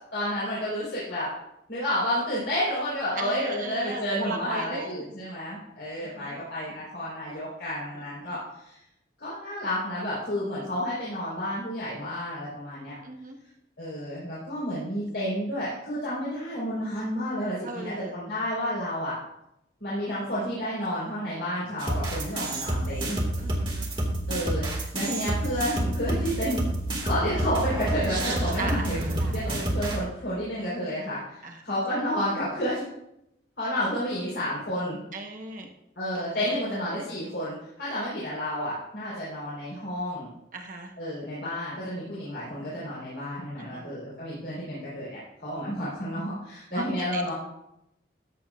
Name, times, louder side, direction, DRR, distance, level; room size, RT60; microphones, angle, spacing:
voice 1, 0.1-1.3 1.7-8.8 9.2-13.0 13.8-19.2 19.8-23.2 24.3-26.6 27.0-29.0 29.3-32.9 33.6-35.0 36.0-40.3 41.0-47.3, equal, 75° left, -8 dB, 4.1 m, -31 dB
voice 2, 3.2-5.0 6.2-6.4 7.9-8.4 13.0-13.4 17.6-18.2 23.4-23.9 27.1-27.2 28.6-29.6 31.4-31.6 35.1-35.7 36.1-36.2 36.7-36.8 40.5-40.9 43.6-43.9 46.7-47.3, right 2 dB, 45° right, 2 dB, 1.1 m, -37 dB
sound 1, 21.8-30.0, right 1 dB, 30° right, 2.0 m, -28 dB
14.0 x 8.7 x 2.5 m, 0.82 s
head